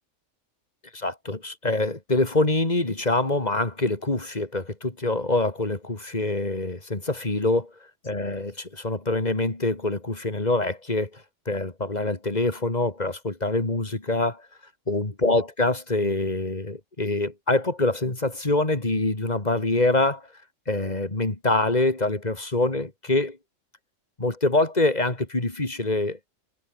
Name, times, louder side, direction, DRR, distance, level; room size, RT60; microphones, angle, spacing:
voice 1, 0.9-7.6 8.1-14.4 14.9-20.2 20.7-23.4 24.2-26.2, left 2 dB, 30° left, 3.3 m, -25 dB
omnidirectional pair, 1.4 m